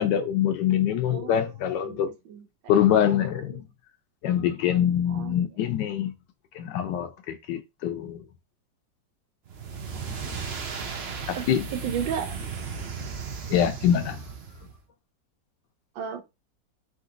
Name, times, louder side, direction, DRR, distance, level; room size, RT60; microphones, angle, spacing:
voice 1, 0.0-2.1 2.7-3.6 4.2-6.1 6.5-8.2 11.3-11.6 13.5-14.2, left 10 dB, 75° left, 1.1 m, -24 dB
voice 2, 1.1-1.4 1.8-2.5 3.1-3.4 5.1-5.5 9.9-10.5 11.3-11.4 11.8-12.4 15.9-16.2, right 8 dB, 90° right, 1.5 m, -34 dB
sound 1, 9.5-14.8, right 5 dB, 70° right, 0.6 m, -35 dB
4.4 x 3.8 x 2.5 m
omnidirectional pair, 2.0 m